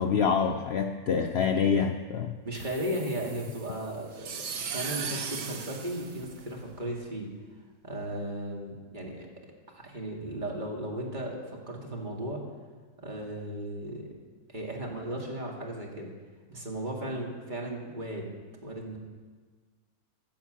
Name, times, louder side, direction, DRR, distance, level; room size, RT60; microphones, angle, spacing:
voice 1, 0.0-2.3, left 6 dB, 80° left, 6 dB, 0.5 m, -26 dB
voice 2, 2.4-7.3 7.8-9.3 9.7-12.4 13.0-14.1 14.5-16.1 16.5-18.4 18.6-19.0, right 1 dB, 30° right, -1 dB, 2.2 m, -36 dB
sound 1, 2.5-6.9, right 6 dB, 90° right, 1.7 m, -38 dB
13.5 x 7.3 x 7.6 m, 1.4 s
omnidirectional pair, 1.8 m